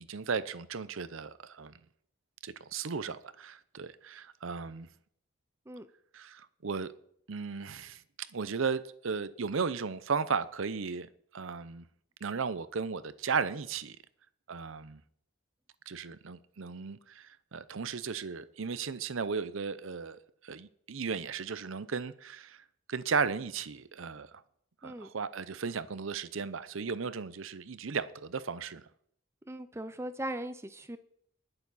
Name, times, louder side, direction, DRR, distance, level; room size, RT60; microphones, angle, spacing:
voice 1, 0.0-1.8 2.4-4.9 6.1-6.9 7.3-8.0 8.3-11.9 12.2-14.0 14.5-15.0 15.9-20.2 20.4-24.4 24.8-28.8, right 5 dB, 75° right, 0.6 m, -35 dB
voice 2, 29.5-31.0, right 1 dB, 15° right, 0.6 m, -39 dB
20.0 x 6.9 x 4.1 m
head